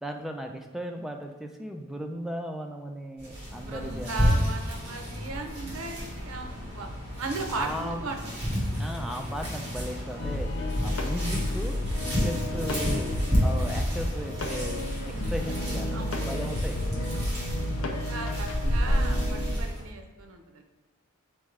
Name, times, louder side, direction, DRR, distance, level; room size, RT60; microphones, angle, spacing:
voice 1, 0.0-4.4 7.5-8.0 8.8-10.5 10.8-11.8 12.2-16.8, equal, ahead, 3 dB, 0.3 m, -36 dB
sound 1, 3.2-19.8, equal, 30° right, 1.4 m, -31 dB
voice 2, 3.6-6.9 7.2-8.6 15.9-16.3 17.1-17.4 18.0-20.6, right 3 dB, 75° right, 4 dB, 0.6 m, -37 dB
sound 2, 10.2-19.6, left 1 dB, 65° left, 0.5 m, -32 dB
4.4 x 3.5 x 3.2 m, 1.3 s
head